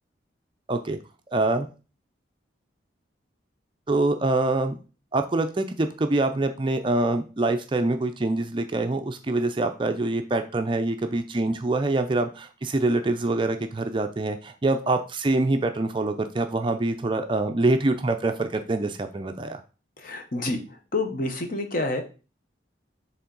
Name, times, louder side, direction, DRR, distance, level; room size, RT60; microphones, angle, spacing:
voice 1, 0.7-1.0 1.3-1.7 3.9-4.8 5.1-19.6, right 2 dB, 25° right, 7 dB, 0.4 m, -25 dB
voice 2, 20.0-20.6 20.9-22.0, left 2 dB, 45° left, 5 dB, 0.9 m, -28 dB
7.0 x 3.6 x 3.9 m, 0.34 s
head